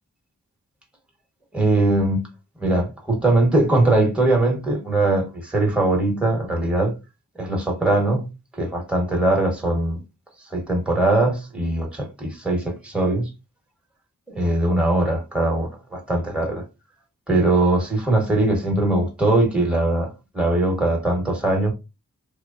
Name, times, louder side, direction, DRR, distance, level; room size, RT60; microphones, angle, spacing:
voice 1, 1.5-2.2 2.6-6.9 7.4-8.3 8.5-10.0 10.5-13.3 14.3-16.6 17.3-21.7, right 2 dB, 5° right, 1.0 m, -21 dB
3.0 x 2.2 x 2.3 m
wide cardioid pair, 55°, 33 cm